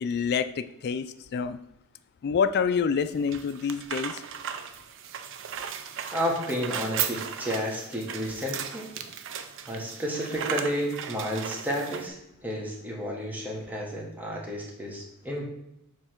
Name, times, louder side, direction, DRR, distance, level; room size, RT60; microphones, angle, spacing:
voice 1, 0.0-1.6 2.2-4.2, left 6 dB, 45° left, 10 dB, 0.3 m, -27 dB
sound 1, 3.0-12.1, right 8 dB, 60° right, 0.5 m, -36 dB
voice 2, 6.1-8.9 9.7-12.1 12.4-15.5, equal, 10° right, -2 dB, 1.1 m, -31 dB
6.8 x 3.2 x 4.4 m, 0.81 s
head